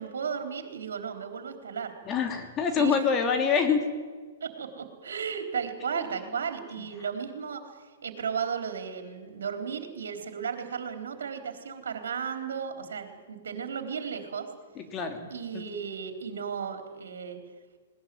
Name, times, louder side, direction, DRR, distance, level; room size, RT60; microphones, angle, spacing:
voice 1, 0.0-1.9 2.7-3.0 4.4-14.5 15.3-17.4, right 6 dB, 70° right, 6 dB, 3.9 m, -35 dB
voice 2, 2.0-3.8 5.9-6.0 6.8-6.9 14.8-15.6, left 6 dB, 25° left, 5 dB, 3.2 m, -26 dB
20.5 x 19.5 x 9.4 m, 1.5 s
hypercardioid pair, 120°, 0 cm